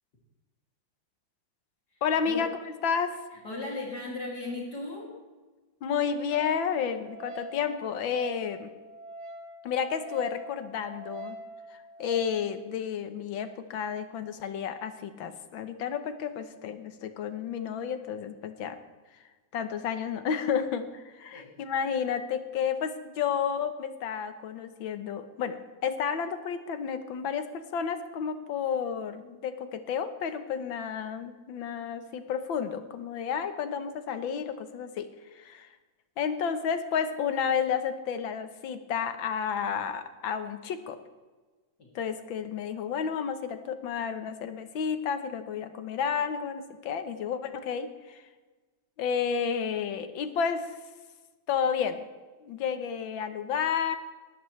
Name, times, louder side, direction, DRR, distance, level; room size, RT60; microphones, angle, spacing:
voice 1, 2.0-2.5 2.8-3.2 5.8-8.7 9.6-11.4 11.7-18.8 19.5-35.1 35.3-35.7 36.2-41.0 42.0-48.2 49.0-50.7 51.5-52.0 52.4-54.0, left 7 dB, 75° left, 9 dB, 1.7 m, -31 dB
voice 2, 3.3-5.1 21.3-21.5 41.8-41.9, left 2 dB, 50° left, -3 dB, 3.2 m, -37 dB
Wind instrument woodwind instrument, 6.3-12.5, right 1 dB, 85° right, 2.6 m, -44 dB
19.5 x 14.0 x 3.2 m, 1.3 s
omnidirectional pair, 2.2 m